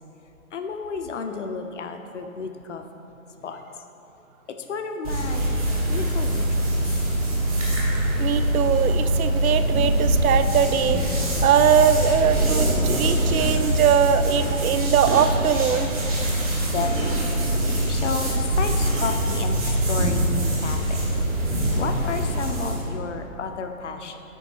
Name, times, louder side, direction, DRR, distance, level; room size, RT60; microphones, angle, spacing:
voice 1, 0.5-2.8 3.4-3.6 4.5-5.5 5.9-6.7 16.3-17.5 17.9-21.1 21.5-24.2, left 5 dB, 55° left, 6 dB, 0.6 m, -32 dB
sound 1, 5.0-22.8, right 1 dB, 25° right, 1.1 m, -23 dB
voice 2, 8.2-11.0 11.4-15.9, right 8 dB, 80° right, 11 dB, 0.5 m, -21 dB
9.0 x 3.9 x 4.2 m, 3.0 s
hypercardioid pair, 165°, 42 cm